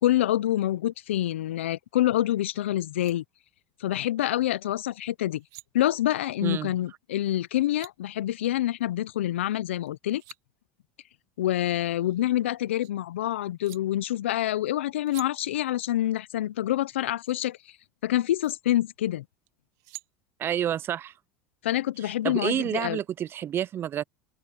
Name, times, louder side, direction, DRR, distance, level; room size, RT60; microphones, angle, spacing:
voice 1, 0.0-3.2 3.8-5.4 5.7-10.2 11.4-17.6 18.0-19.2 21.6-23.0, left 13 dB, 80° left, 0.8 m, -26 dB
sound 1, 2.5-2.6 2.8-3.1 5.2-5.7 7.3-8.0 9.9-10.4 11.8-12.9 13.6-13.8 15.1-15.3 17.2-17.3 18.2-18.5 19.5-20.1, right 22 dB, 60° right, 1.4 m, -48 dB
voice 2, 6.4-6.7 20.4-21.1 22.2-24.0, right 10 dB, 35° right, 0.5 m, -29 dB
open air
hypercardioid pair, 90°, 6 cm